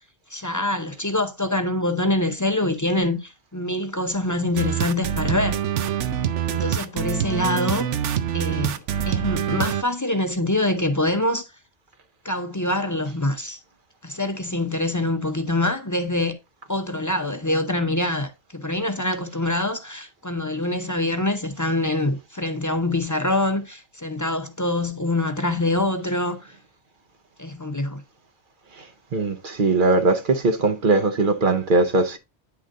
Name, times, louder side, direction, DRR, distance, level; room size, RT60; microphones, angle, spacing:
voice 1, 0.3-5.6 6.5-7.9 8.3-8.8 9.1-11.5 12.2-13.6 14.0-16.3 16.7-26.5 27.4-28.0, left 1 dB, 20° left, 0.5 m, -25 dB
sound 1, 4.6-9.8, right 9 dB, 90° right, 1.0 m, -25 dB
voice 2, 29.1-32.2, right 3 dB, 50° right, 0.9 m, -20 dB
9.4 x 4.0 x 3.7 m
omnidirectional pair, 1.2 m